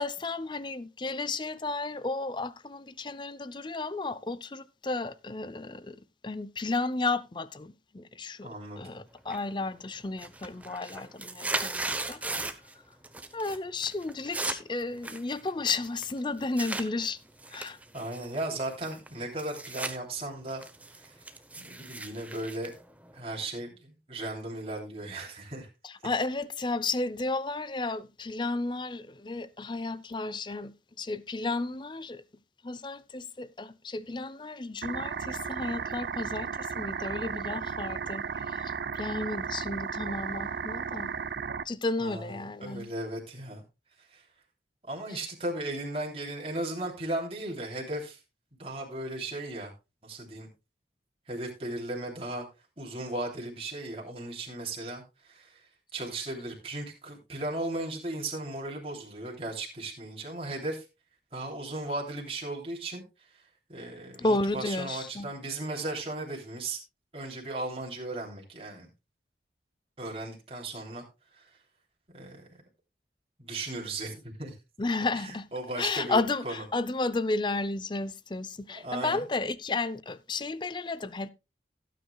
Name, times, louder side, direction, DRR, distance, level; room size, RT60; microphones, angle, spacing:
voice 1, 0.0-6.0 6.2-8.5 8.8-12.2 13.3-17.2 17.5-17.8 25.8-32.2 32.6-41.1 41.6-42.9 64.2-65.3 74.8-75.5 75.8-81.3, left 3 dB, 25° left, 0.5 m, -33 dB
voice 2, 8.4-9.0 17.9-20.7 20.9-21.2 21.6-22.7 23.1-25.7 42.0-43.6 44.0-44.2 44.9-48.2 48.6-49.7 50.0-50.5 51.3-52.5 52.8-60.8 61.3-63.4 63.7-66.8 67.1-68.9 70.0-71.0 71.3-71.6 72.1-72.5 73.4-74.5 75.2-76.6 78.7-79.2, right 2 dB, 35° right, 3.2 m, -36 dB
sound 1, 9.3-9.7 10.0-12.7 13.0-13.6 13.8-16.9 17.4-20.0 20.3-23.5, right 2 dB, 10° right, 0.9 m, -37 dB
sound 2, 34.8-41.6, right 6 dB, 65° right, 0.5 m, -34 dB
17.0 x 9.3 x 2.3 m
head